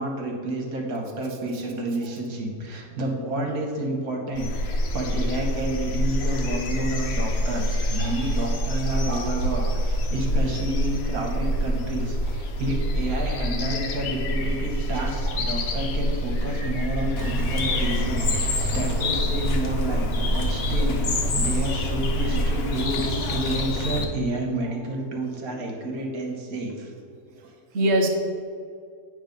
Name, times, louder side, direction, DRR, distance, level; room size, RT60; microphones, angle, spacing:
voice 1, 0.0-26.9, right 1 dB, 75° right, 1 dB, 1.5 m, -30 dB
sound 1, 4.3-22.8, equal, 70° left, 1.1 m, -27 dB
voice 2, 8.0-8.6 8.8-9.8 14.4-14.5 14.9-15.4 18.5-18.8 24.6-24.8 25.5-25.8 27.4-28.1, right 1 dB, 55° right, 1 dB, 0.9 m, -29 dB
Bird, 17.1-24.0, left 1 dB, 50° left, 0.8 m, -27 dB
8.8 x 3.2 x 5.2 m, 2.2 s
omnidirectional pair, 1.6 m